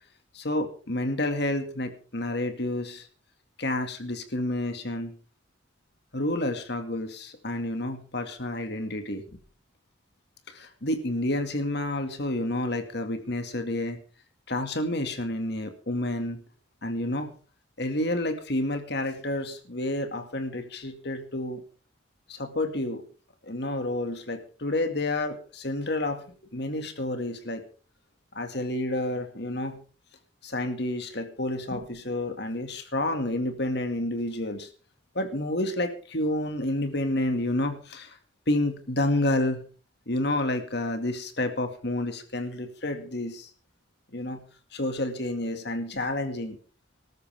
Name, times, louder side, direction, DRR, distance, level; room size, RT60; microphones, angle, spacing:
voice 1, 0.3-3.1 3.6-5.1 6.1-9.2 10.5-14.0 14.5-16.4 16.8-17.4 17.8-21.6 22.3-23.0 23.4-27.6 28.4-29.8 30.4-34.7 35.1-38.2 38.5-39.6 40.1-43.5 44.1-44.4 44.7-46.6, left 1 dB, 60° left, 6 dB, 2.2 m, -29 dB
20.5 x 13.5 x 3.6 m, 0.39 s
head